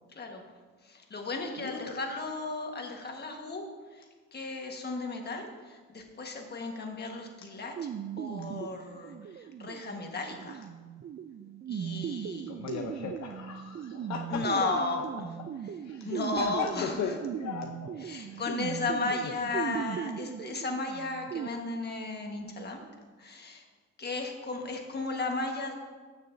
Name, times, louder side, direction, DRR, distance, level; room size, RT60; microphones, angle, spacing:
voice 1, 0.9-3.6 4.3-7.7 8.2-10.6 11.7-12.5 14.3-15.3 16.0-16.9 18.1-22.8 23.2-23.6 24.0-25.7, left 3 dB, 35° left, 2 dB, 1.5 m, -34 dB
voice 2, 1.6-2.0 12.5-14.4 15.8-18.6 19.2-19.3, left 6 dB, 65° left, 2 dB, 0.8 m, -37 dB
sound 1, 7.8-21.5, right 8 dB, 35° right, 0.4 m, -38 dB
13.5 x 6.6 x 2.7 m, 1.4 s
cardioid pair, 90°, 30 cm